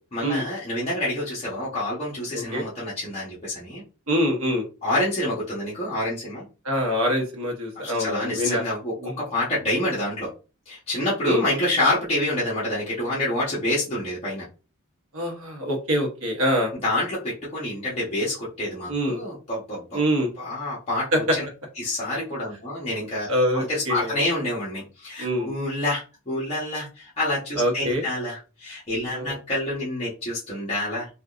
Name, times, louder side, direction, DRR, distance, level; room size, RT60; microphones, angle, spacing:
voice 1, 0.1-3.8 4.8-6.4 7.8-10.3 10.7-14.4 16.8-20.0 20.4-21.4 21.8-23.3 23.5-31.1, left 1 dB, 30° left, -9 dB, 1.0 m, -27 dB
voice 2, 2.3-2.6 4.1-4.6 6.6-8.6 9.0-9.2 11.2-11.4 15.1-16.7 18.9-19.2 19.9-20.3 21.1-21.4 23.3-24.2 25.2-25.5 27.6-28.0 29.1-29.4, equal, 70° right, 1 dB, 1.0 m, -24 dB
3.6 x 2.4 x 2.4 m, 0.33 s
head